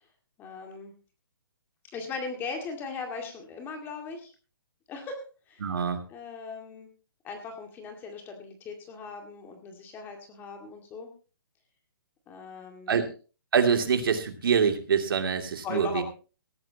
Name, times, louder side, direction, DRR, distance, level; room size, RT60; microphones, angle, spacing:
voice 1, 0.4-0.9 1.9-4.3 4.9-6.9 7.2-11.1 12.3-13.0 15.6-16.0, left 4 dB, 15° left, 4 dB, 2.1 m, -39 dB
voice 2, 5.6-6.0 12.9-13.1 13.5-16.0, right 6 dB, 70° right, 6 dB, 2.8 m, -25 dB
18.5 x 14.0 x 2.9 m, 0.34 s
hypercardioid pair, 155°, 12 cm